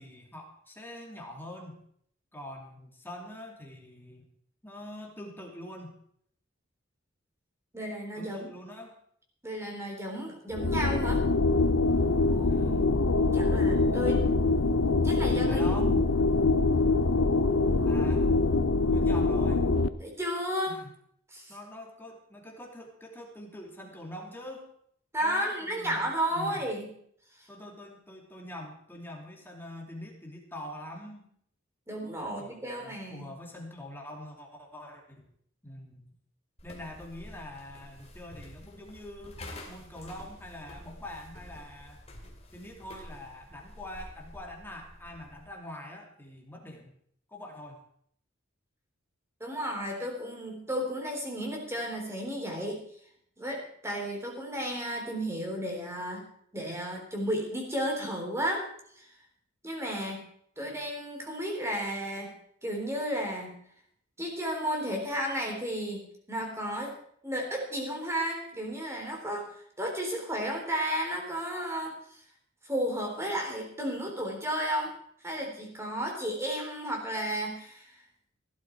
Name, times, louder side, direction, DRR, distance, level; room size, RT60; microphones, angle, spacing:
voice 1, 0.0-1.8 2.3-4.3 4.6-6.0 8.2-8.9 12.5-13.0 13.9-14.2 15.5-15.9 17.9-18.3 18.9-19.7 20.7-20.9 21.5-24.7 25.2-26.0 26.3-26.7 27.5-31.3 32.2-35.3 35.6-36.1 36.6-42.0 42.5-46.9 47.3-47.8, left 1 dB, 10° left, 1 dB, 2.6 m, -44 dB
voice 2, 7.7-8.5 9.4-11.2 12.3-12.8 13.3-14.2 15.0-16.1 20.0-20.8 21.3-21.6 25.1-26.9 31.9-33.3 49.4-52.8 53.4-56.2 56.5-58.7 59.0-59.1 59.6-60.2 60.6-62.3 62.6-63.5 64.2-67.0 67.2-72.2 72.6-74.9 75.2-78.0, equal, 15° right, 1 dB, 3.7 m, -33 dB
sound 1, 10.5-19.9, left 3 dB, 75° left, 0.8 m, -24 dB
sound 2, 36.6-45.5, left 1 dB, 30° left, 2.5 m, -48 dB
16.0 x 12.0 x 4.6 m, 0.64 s
head